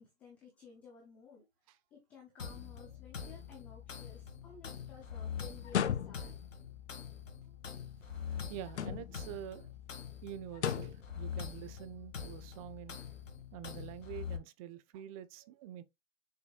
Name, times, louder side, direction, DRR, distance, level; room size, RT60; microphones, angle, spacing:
voice 1, 0.0-6.4 12.9-13.1, left 5 dB, 5° left, 0.3 m, -56 dB
sound 1, 2.4-14.4, left 7 dB, 90° left, 1.9 m, -44 dB
sound 2, 5.6-6.5 8.7-9.3 10.5-11.1, left 9 dB, 65° left, 1.0 m, -35 dB
voice 2, 8.1-9.7 10.2-13.0 13.5-15.8, right 11 dB, 30° right, 0.8 m, -47 dB
6.9 x 6.6 x 2.2 m
hypercardioid pair, 135°, 37 cm